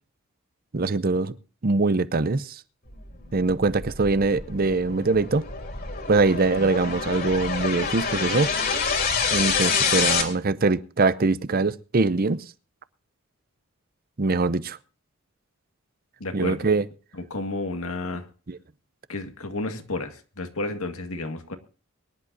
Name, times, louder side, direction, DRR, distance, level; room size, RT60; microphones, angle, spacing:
voice 1, 0.7-1.3 1.6-2.6 3.3-5.5 6.1-8.5 9.3-12.4 14.2-14.8 16.3-16.8 18.5-18.6, right 3 dB, 40° right, 0.6 m, -23 dB
sound 1, 3.3-10.2, left 5 dB, 45° left, 3.4 m, -27 dB
voice 2, 16.2-16.7 17.1-18.3 19.1-21.6, left 2 dB, 80° left, 2.0 m, -31 dB
23.0 x 11.0 x 2.7 m
head